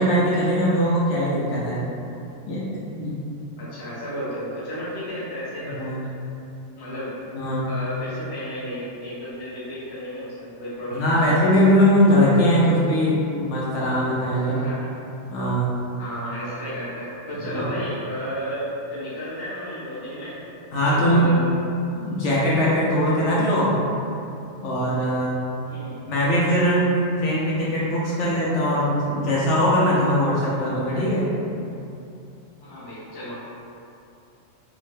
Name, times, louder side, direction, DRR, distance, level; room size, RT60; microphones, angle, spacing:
voice 1, 0.0-1.8 2.5-2.6 2.9-3.2 5.7-6.0 7.3-7.7 10.9-14.6 15.3-15.7 17.5-17.6 20.7-21.4 21.9-23.7 24.6-25.4 26.1-31.3, equal, 70° left, -7 dB, 0.9 m, -21 dB
voice 2, 3.6-5.9 6.8-11.4 14.4-14.9 16.0-20.4 20.8-21.6 25.7-25.9 32.6-33.4, equal, 25° left, -10 dB, 0.7 m, -33 dB
3.6 x 2.1 x 3.2 m, 2.7 s
omnidirectional pair, 1.3 m